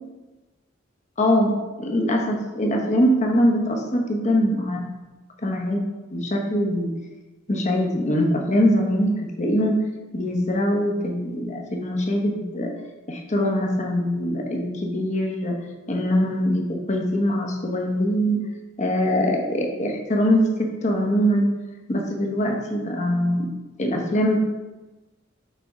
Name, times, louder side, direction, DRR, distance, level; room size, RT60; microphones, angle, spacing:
voice 1, 1.2-1.5 1.8-4.8 5.4-5.8 6.1-6.9 7.5-9.8 10.1-12.7 13.1-15.6 15.9-18.4 18.8-21.5 21.9-23.5 23.8-24.4, equal, 40° left, 1 dB, 0.9 m, -22 dB
6.7 x 3.5 x 4.9 m, 1.2 s
head